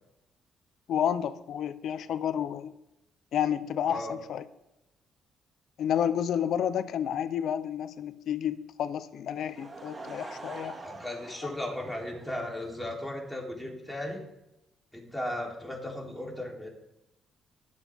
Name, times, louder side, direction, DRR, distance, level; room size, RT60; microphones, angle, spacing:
voice 1, 0.9-2.7 3.3-4.4 5.8-10.8 11.4-11.5, left 9 dB, 70° left, 14 dB, 0.7 m, -30 dB
Laughter / Crowd, 9.3-12.9, right 3 dB, 30° right, 2.4 m, -45 dB
voice 2, 10.8-14.2 14.9-16.7, left 1 dB, 5° left, -1 dB, 3.5 m, -36 dB
21.5 x 8.1 x 3.6 m, 0.91 s
cardioid pair, 90°, 0 cm